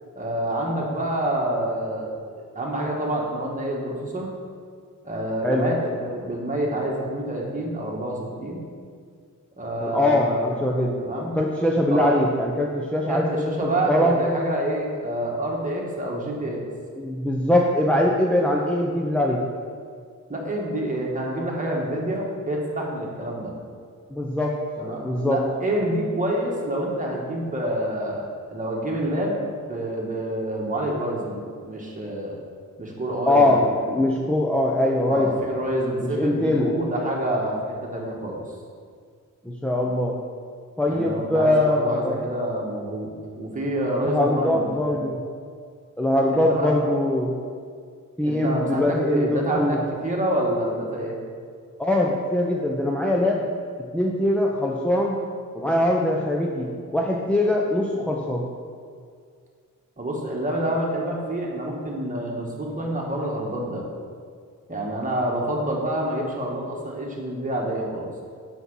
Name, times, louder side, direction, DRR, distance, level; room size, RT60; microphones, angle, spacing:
voice 1, 0.1-4.3 5.0-8.6 9.6-10.5 11.0-11.3 11.9-12.1 13.1-16.6 20.3-23.5 24.8-29.3 29.7-32.4 32.8-34.0 35.1-38.4 40.8-45.0 46.3-46.7 48.2-51.2 60.0-63.8 64.7-68.0, right 1 dB, 25° right, -2 dB, 1.7 m, -27 dB
voice 2, 9.8-11.0 11.3-14.2 17.0-19.4 24.1-24.6 25.0-25.4 33.2-35.3 36.0-36.7 39.4-40.2 40.8-42.3 44.0-45.2 46.0-47.3 48.2-49.8 51.8-53.4 53.9-55.2 55.5-58.4, left 1 dB, 5° left, -2 dB, 0.7 m, -22 dB
6.3 x 6.1 x 5.5 m, 2.1 s
cardioid pair, 95°, 32 cm